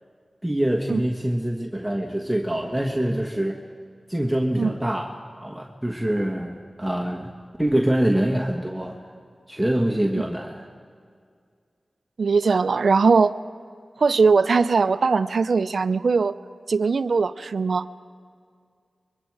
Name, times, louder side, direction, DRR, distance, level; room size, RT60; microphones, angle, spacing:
voice 1, 0.4-3.6 4.1-7.3 7.6-9.0 9.5-10.6, right 1 dB, 5° right, 1 dB, 1.4 m, -25 dB
voice 2, 12.2-13.4 14.0-16.4 16.7-17.9, right 4 dB, 80° right, 13 dB, 0.5 m, -20 dB
24.5 x 22.5 x 4.8 m, 2.2 s
cardioid pair, 55°, 0 cm